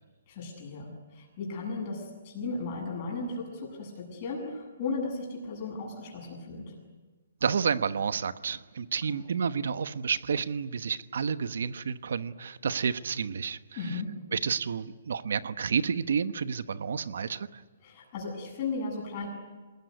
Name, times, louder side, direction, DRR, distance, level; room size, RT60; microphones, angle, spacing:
voice 1, 0.3-6.7 9.1-9.2 13.8-14.1 17.8-19.3, left 3 dB, 25° left, 0 dB, 7.7 m, -36 dB
voice 2, 7.4-13.6 13.8-14.0 14.3-17.6, right 6 dB, 65° right, 12 dB, 1.1 m, -30 dB
28.0 x 20.5 x 9.6 m, 1.3 s
hypercardioid pair, 175°, 0 cm